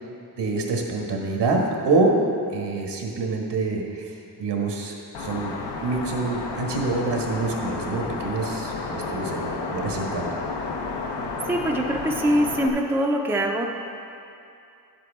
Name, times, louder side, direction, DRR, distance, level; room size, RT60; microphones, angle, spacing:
voice 1, 0.4-2.1 2.5-4.0 4.4-10.4, right 3 dB, 80° right, 0 dB, 1.5 m, -26 dB
sound 1, 5.1-12.7, left 3 dB, 75° left, 0.9 m, -31 dB
voice 2, 11.5-13.7, equal, 5° right, 1 dB, 0.5 m, -23 dB
11.0 x 7.6 x 3.6 m, 2.6 s
wide cardioid pair, 135°, 41 cm